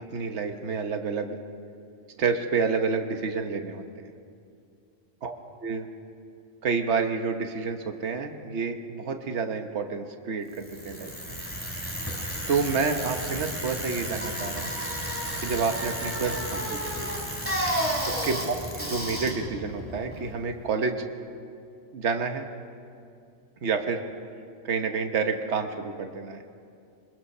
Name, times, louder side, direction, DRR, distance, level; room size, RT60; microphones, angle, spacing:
voice 1, 0.1-1.4 2.2-4.1 5.2-5.3 5.6-5.9 6.6-11.1 12.5-14.7 15.4-17.1 18.1-21.1 21.9-22.5 23.6-24.0 24.6-26.4, right 5 dB, 65° right, 6 dB, 1.4 m, -29 dB
Bicycle, 10.5-20.6, equal, 10° right, 3.1 m, -32 dB
22.5 x 21.5 x 5.5 m, 2.4 s
omnidirectional pair, 1.2 m